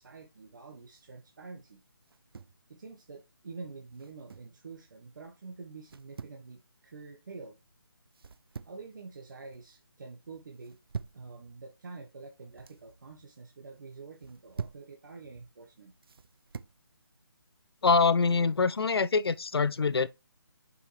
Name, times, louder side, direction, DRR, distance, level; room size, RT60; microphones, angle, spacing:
voice 1, 0.0-1.8 2.7-7.6 8.6-10.8 11.1-15.9, right 4 dB, 50° right, 1.2 m, -47 dB
sound 1, 2.0-2.6 3.9-4.6 5.8-6.4 8.1-8.9 9.3-9.7 10.6-11.3 12.3-12.8 14.1-14.9 16.0-16.8, right 6 dB, 70° right, 0.5 m, -44 dB
voice 2, 17.8-20.1, left 4 dB, 75° left, 0.6 m, -24 dB
6.9 x 5.5 x 3.2 m
hypercardioid pair, 170°, 13 cm